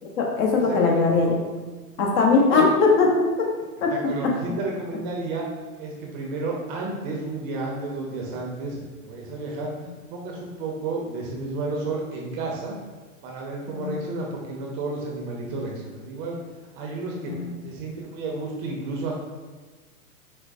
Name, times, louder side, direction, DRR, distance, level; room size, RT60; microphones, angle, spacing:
voice 1, 0.0-1.3 2.0-3.1 3.8-3.9 13.7-14.1 17.3-17.6, left 4 dB, 45° left, -1 dB, 1.0 m, -20 dB
voice 2, 0.7-1.0 2.3-2.7 3.9-5.5 5.8-9.7 10.1-12.8 13.2-16.4 16.7-19.1, right 3 dB, 35° right, -1 dB, 0.7 m, -32 dB
6.2 x 2.2 x 2.6 m, 1.3 s
hypercardioid pair, 120°, 45 cm